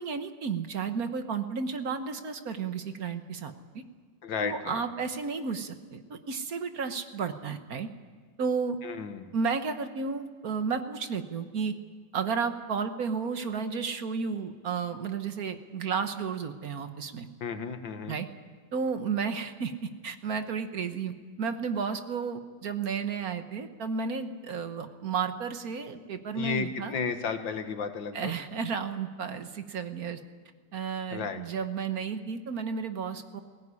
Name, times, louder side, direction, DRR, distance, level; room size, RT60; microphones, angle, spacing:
voice 1, 0.0-3.8 4.4-7.9 8.4-8.8 9.3-11.7 12.1-17.3 18.1-18.3 18.7-21.1 21.4-27.0 28.1-30.2 30.7-33.4, right 5 dB, 55° right, 8 dB, 1.6 m, -32 dB
voice 2, 4.2-4.8 8.8-9.3 17.4-18.2 26.3-28.3 31.1-31.4, left 5 dB, 85° left, 7 dB, 2.2 m, -33 dB
20.5 x 17.5 x 9.8 m, 1.5 s
omnidirectional pair, 2.0 m